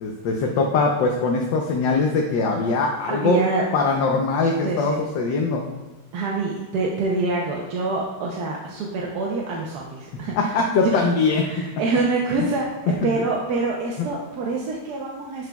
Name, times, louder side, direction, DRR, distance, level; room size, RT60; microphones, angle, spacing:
voice 1, 0.0-3.4 3.7-5.7 10.4-11.4 13.0-13.1 14.0-14.1, left 4 dB, 70° left, 1 dB, 1.4 m, -22 dB
voice 2, 3.1-3.6 4.6-5.1 6.1-10.5 10.8-11.1 11.4-12.7 13.0-15.5, right 3 dB, 65° right, -2 dB, 1.2 m, -26 dB
11.0 x 4.9 x 2.3 m, 1.2 s
omnidirectional pair, 2.1 m